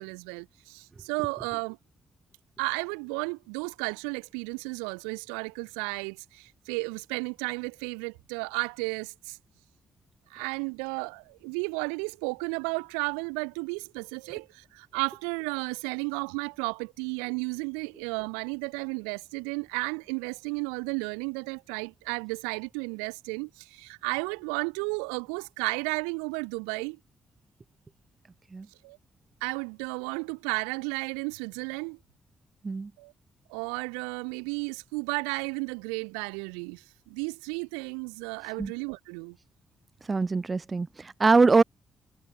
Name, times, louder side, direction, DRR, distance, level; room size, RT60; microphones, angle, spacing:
voice 1, 0.0-1.8 2.6-9.4 10.3-27.0 28.8-29.0 29.4-32.0 33.0-33.1 33.5-39.4, right 40 dB or more, 85° right, 0.6 m, -33 dB
voice 2, 40.1-41.6, right 4 dB, 35° right, 0.3 m, -23 dB
hypercardioid pair, 40°, 0 cm